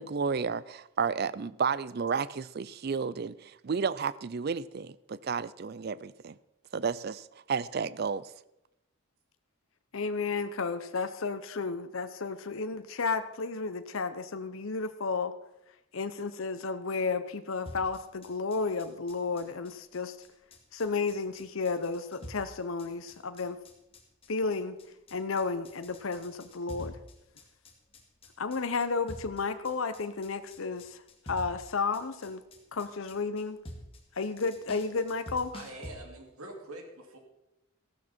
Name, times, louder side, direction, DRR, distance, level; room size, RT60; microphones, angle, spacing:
voice 1, 0.0-6.4 6.7-8.3, right 5 dB, 45° right, 18 dB, 0.4 m, -32 dB
voice 2, 9.9-15.4 15.9-20.2 20.7-23.6 24.3-24.8 25.1-27.0 28.4-31.0 31.3-32.4 32.7-33.6 34.1-35.5, left 4 dB, 70° left, 10 dB, 0.7 m, -32 dB
sound 1, 17.7-35.9, equal, 25° left, 2.0 m, -47 dB
voice 3, 35.5-37.2, right 2 dB, 85° right, 3 dB, 2.6 m, -45 dB
14.5 x 12.5 x 4.4 m, 0.85 s
head